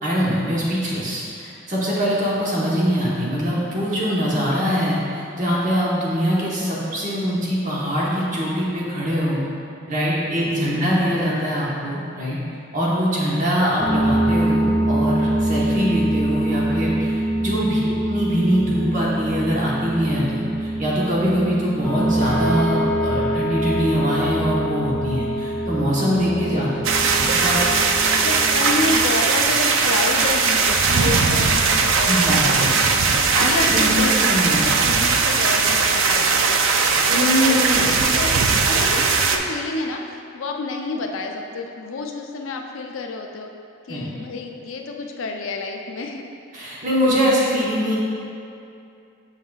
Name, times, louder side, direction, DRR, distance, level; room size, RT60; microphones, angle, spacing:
voice 1, 0.0-9.4 9.9-12.4 12.7-26.7 27.1-27.9 32.1-32.8 33.1-34.7 37.1-38.0 43.9-44.1 46.5-48.0, equal, 35° right, -6 dB, 1.1 m, -23 dB
sound 1, 13.8-29.0, right 1 dB, 10° left, 0.7 m, -24 dB
voice 2, 17.5-17.8 26.5-26.7 28.2-33.0 33.4-34.1 34.5-36.6 37.0-40.0 40.3-43.5 43.9-46.2, left 3 dB, 75° left, 2 dB, 0.5 m, -29 dB
sound 2, 26.8-39.4, right 4 dB, 70° right, 0.4 m, -19 dB
7.2 x 5.6 x 2.3 m, 2.6 s
head